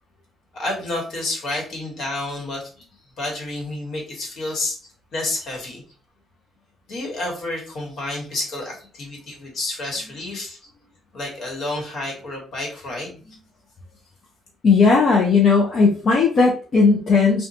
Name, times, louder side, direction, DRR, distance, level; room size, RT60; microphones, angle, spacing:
voice 1, 0.5-2.7 3.2-4.8 5.1-5.8 6.9-10.6 11.1-13.2, left 2 dB, 70° left, -2 dB, 1.2 m, -29 dB
voice 2, 14.6-17.5, left 4 dB, 50° left, -2 dB, 0.5 m, -16 dB
2.8 x 2.2 x 2.5 m, 0.39 s
cardioid pair, 90°, 0 cm